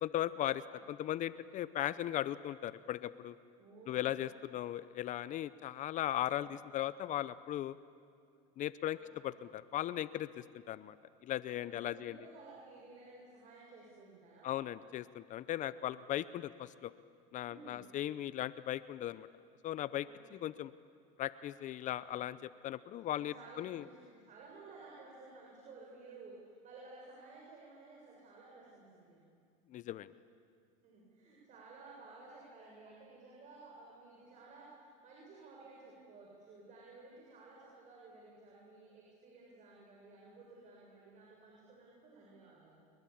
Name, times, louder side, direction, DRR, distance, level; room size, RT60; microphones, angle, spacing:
voice 1, 0.0-3.4 3.9-7.8 8.6-9.0 9.2-11.0 11.2-12.2 14.4-16.9 17.3-19.3 19.6-20.7 21.2-23.8 29.7-30.1, left 12 dB, 45° left, 16 dB, 0.7 m, -38 dB
voice 2, 3.6-4.2 6.2-6.5 8.9-9.1 9.4-9.5 11.4-14.5 17.4-17.9 20.0-20.4 21.9-22.2 23.1-26.4 26.6-29.2 30.8-42.8, right 3 dB, 45° right, -3 dB, 7.4 m, -55 dB
29.0 x 23.0 x 8.7 m, 2.3 s
supercardioid pair, 110°, 18 cm